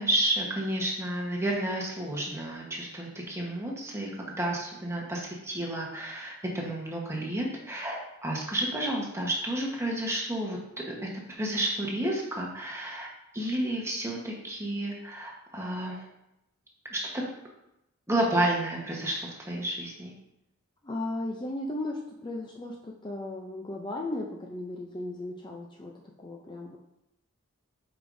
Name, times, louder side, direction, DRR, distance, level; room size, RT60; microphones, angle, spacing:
voice 1, 0.0-4.1 4.4-11.1 11.4-13.1 13.3-16.0 16.9-17.2 18.1-20.1, right 1 dB, 15° right, -2 dB, 1.2 m, -31 dB
voice 2, 20.8-25.9 26.2-26.8, left 2 dB, 20° left, -1 dB, 0.5 m, -36 dB
8.0 x 5.0 x 2.6 m, 0.86 s
head